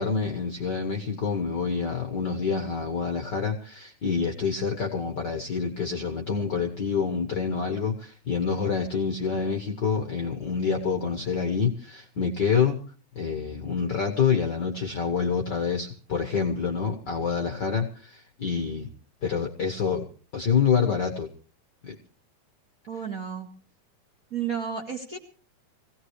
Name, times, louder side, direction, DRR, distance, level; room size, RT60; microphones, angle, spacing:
voice 1, 0.0-12.8 13.1-18.9 19.2-20.0 20.3-21.3 21.8-21.9, left 6 dB, 50° left, 3 dB, 1.3 m, -27 dB
voice 2, 22.9-23.5 24.3-25.2, right 7 dB, 35° right, 2 dB, 1.8 m, -32 dB
23.5 x 17.0 x 3.2 m, 0.39 s
omnidirectional pair, 3.7 m